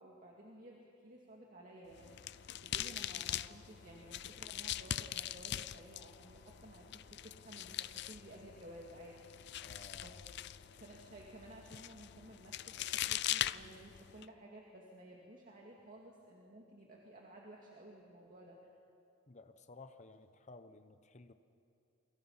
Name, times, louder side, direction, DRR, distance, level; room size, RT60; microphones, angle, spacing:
voice 1, 0.0-10.2 10.7-18.6, right 1 dB, 45° right, -2 dB, 2.4 m, -55 dB
sound 1, 1.9-14.2, left 12 dB, 60° left, 0.5 m, -42 dB
voice 2, 9.6-10.2 19.3-21.3, left 3 dB, 35° left, 9 dB, 1.0 m, -55 dB
29.0 x 23.5 x 5.8 m, 2.6 s
head